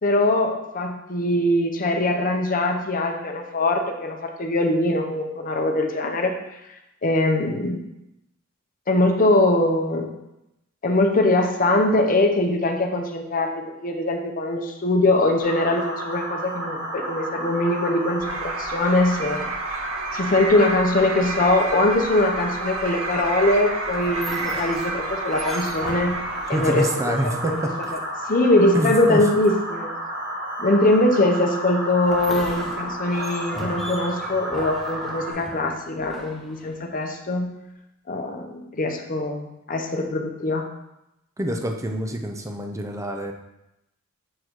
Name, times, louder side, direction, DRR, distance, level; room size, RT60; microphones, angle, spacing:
voice 1, 0.0-6.3 7.0-7.9 8.9-10.1 10.8-19.5 20.1-26.2 26.5-27.6 28.3-29.9 30.6-37.5 38.1-40.7, left 2 dB, 40° left, 3 dB, 0.7 m, -22 dB
sound 1, 15.4-35.3, right 1 dB, 50° right, 1.3 m, -32 dB
sound 2, 18.2-26.8, right 4 dB, 85° right, 0.6 m, -33 dB
sound 3, 23.9-28.2 32.0-37.1, equal, ahead, 1.1 m, -37 dB
voice 2, 26.5-27.6 28.7-29.2 41.4-43.3, right 1 dB, 15° right, 3 dB, 0.6 m, -26 dB
6.4 x 4.1 x 4.5 m, 0.89 s
head